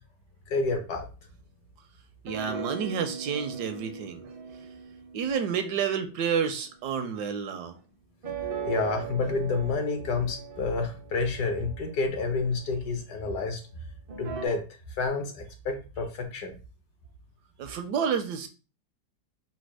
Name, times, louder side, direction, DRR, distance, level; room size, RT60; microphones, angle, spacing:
voice 1, 0.5-1.1 8.6-13.6 14.2-14.6 15.0-16.5, left 3 dB, 65° left, 1.4 m, -29 dB
voice 2, 2.2-4.2 5.1-7.8 17.6-18.5, right 7 dB, 75° right, 1.2 m, -30 dB
sound 1, 2.3-6.6 8.2-12.8 14.1-14.5, right 6 dB, 60° right, 0.6 m, -39 dB
4.2 x 2.2 x 4.6 m
omnidirectional pair, 1.9 m